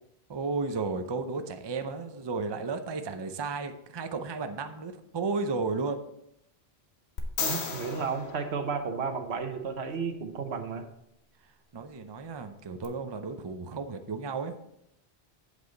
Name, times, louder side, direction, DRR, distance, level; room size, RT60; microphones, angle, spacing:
voice 1, 0.3-6.0 11.7-14.5, right 4 dB, 30° right, 8 dB, 0.5 m, -33 dB
sound 1, 7.2-9.4 12.8-12.9, left 5 dB, 80° left, 1.3 m, -35 dB
voice 2, 7.4-10.8, right 5 dB, 75° right, 6 dB, 1.2 m, -33 dB
8.3 x 8.2 x 4.0 m, 0.78 s
omnidirectional pair, 1.1 m